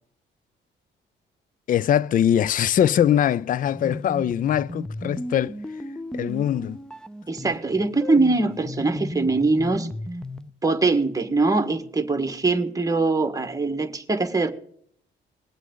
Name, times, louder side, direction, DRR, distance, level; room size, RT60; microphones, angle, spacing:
voice 1, 1.7-5.6 6.1-6.8, left 10 dB, 45° left, 0.4 m, -22 dB
sound 1, 3.6-10.5, left 1 dB, 5° left, 0.7 m, -35 dB
voice 2, 7.3-9.9 10.6-14.5, right 3 dB, 15° right, 1.6 m, -22 dB
21.0 x 8.2 x 3.9 m
cardioid pair, 90°, 20 cm